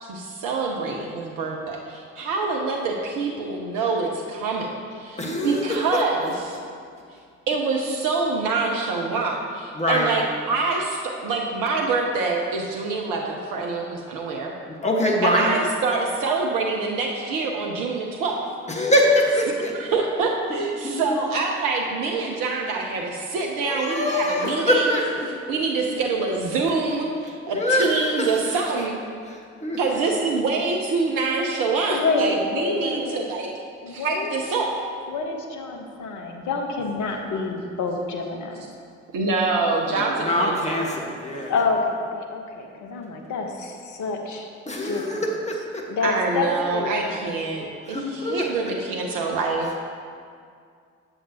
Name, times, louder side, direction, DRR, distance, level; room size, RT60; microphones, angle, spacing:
voice 1, 0.0-6.6 7.5-14.5 15.2-18.4 19.8-25.0 25.3-29.0 29.8-33.5 33.9-34.8 39.1-40.8 46.0-49.8, right 3 dB, 60° right, 0 dB, 0.7 m, -25 dB
voice 2, 5.2-6.0 9.7-10.1 14.7-15.5 18.7-19.7 20.8-20.9 23.6-25.3 27.5-28.3 29.3-29.4 29.6-29.8 39.9-41.5 44.7-45.8 47.5-48.4, left 1 dB, 20° left, -1 dB, 1.3 m, -24 dB
voice 3, 31.9-33.3 33.8-34.3 35.1-38.6 41.5-44.5 44.8-45.3 45.9-47.2, left 3 dB, 50° left, 3 dB, 0.9 m, -27 dB
7.8 x 7.3 x 2.8 m, 2.3 s
figure-of-eight pair, 40°, 37 cm